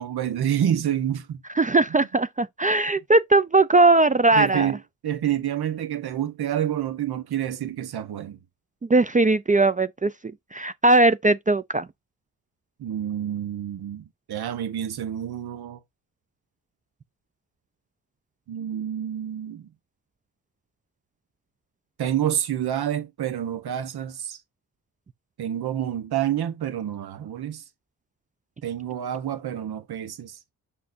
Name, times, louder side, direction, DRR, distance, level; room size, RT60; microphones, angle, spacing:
voice 1, 0.0-1.4 4.3-8.4 12.8-15.8 18.5-19.7 22.0-24.4 25.4-27.6 28.6-30.4, right 10 dB, 90° right, 1.0 m, -28 dB
voice 2, 1.6-4.7 8.9-10.1 10.5-11.9, right 2 dB, 20° right, 0.4 m, -19 dB
6.5 x 5.5 x 2.6 m
wide cardioid pair, 100°, 37 cm